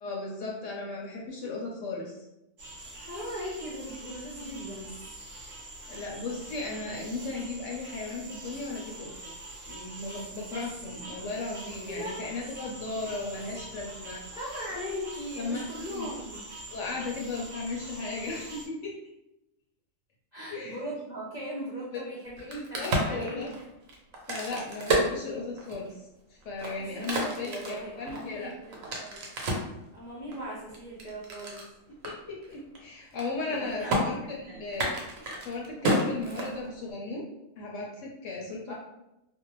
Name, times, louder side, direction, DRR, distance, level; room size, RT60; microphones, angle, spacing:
voice 1, 0.0-2.2 5.9-9.3 9.6-14.2 15.4-16.1 16.7-18.9 20.5-20.8 21.9-22.0 22.4-23.5 24.3-28.5 32.0-35.0 35.4-37.3 37.6-38.7, left 3 dB, 70° left, -2 dB, 0.9 m, -36 dB
sound 1, 2.6-18.6, right 2 dB, 50° right, 0.8 m, -44 dB
voice 2, 2.9-4.9 10.0-10.2 11.9-12.2 14.3-16.4 20.3-22.4 22.7-23.6 26.8-29.2 29.9-31.6 33.5-34.7 38.7-38.8, equal, 45° left, -8 dB, 0.6 m, -39 dB
Crack, 22.3-25.9 26.4-29.7 30.3-31.7 32.0-32.1 32.4-32.8 33.0-33.6 33.9-34.0 34.7-36.9, right 1 dB, 80° right, 1.1 m, -30 dB
2.6 x 2.1 x 2.9 m, 0.90 s
omnidirectional pair, 1.4 m